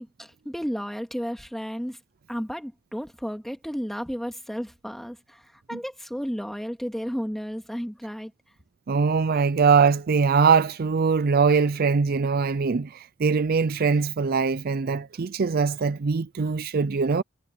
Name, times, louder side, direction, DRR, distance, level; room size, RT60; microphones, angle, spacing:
voice 1, 0.0-2.0 2.3-8.3, equal, ahead, 2.1 m, -33 dB
voice 2, 8.9-17.2, right 5 dB, 45° right, 0.4 m, -22 dB
head